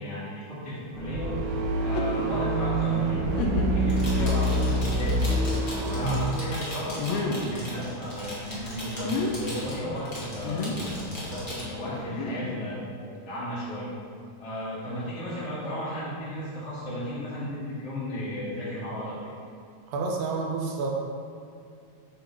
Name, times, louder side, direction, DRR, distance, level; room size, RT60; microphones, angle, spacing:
voice 1, 0.0-1.3 1.8-3.2 3.7-5.2 5.7-10.7 11.3-13.9 14.4-19.2, equal, 55° left, -13 dB, 2.5 m, -34 dB
sound 1, 0.9-6.1, right 1 dB, 90° right, 2.4 m, -26 dB
sound 2, 1.8-2.3 2.8-2.9 3.4-3.9 4.6-4.7 7.0-7.5 8.9-9.3 10.4-10.9 11.8-12.7, left 3 dB, 80° left, 1.8 m, -30 dB
sound 3, 3.8-11.6, equal, 30° left, 0.9 m, -38 dB
voice 2, 19.9-20.9, right 4 dB, 70° right, 0 dB, 1.8 m, -29 dB
7.9 x 3.3 x 5.2 m, 2.4 s
omnidirectional pair, 3.5 m